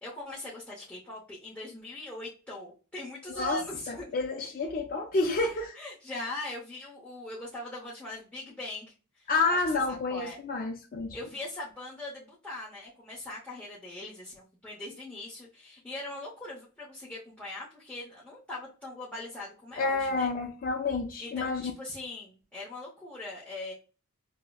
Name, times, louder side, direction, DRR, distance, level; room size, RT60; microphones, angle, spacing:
voice 1, 0.0-4.1 5.8-9.6 10.1-10.4 11.1-20.3 21.2-23.7, left 2 dB, 5° left, 0.7 m, -41 dB
voice 2, 3.3-3.6 3.9-5.8 9.3-11.2 19.8-21.6, left 3 dB, 40° left, 0.4 m, -29 dB
5.4 x 2.0 x 2.2 m
head